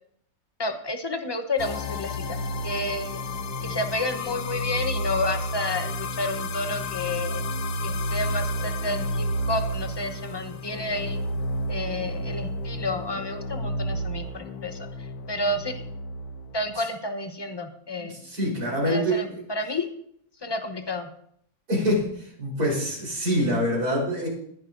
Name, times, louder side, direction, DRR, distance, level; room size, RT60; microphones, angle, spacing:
voice 1, 0.6-2.4 2.6-3.2 3.6-7.5 7.8-11.2 11.7-14.9 15.3-15.8 16.5-18.1 18.9-19.9 20.4-21.1, left 2 dB, 20° left, 7 dB, 0.9 m, -30 dB
sound 1, 1.6-16.7, left 1 dB, 90° left, 1.3 m, -31 dB
voice 2, 18.0-19.4 21.7-24.3, equal, 80° right, -3 dB, 4.9 m, -25 dB
19.5 x 10.5 x 2.7 m, 0.69 s
omnidirectional pair, 1.6 m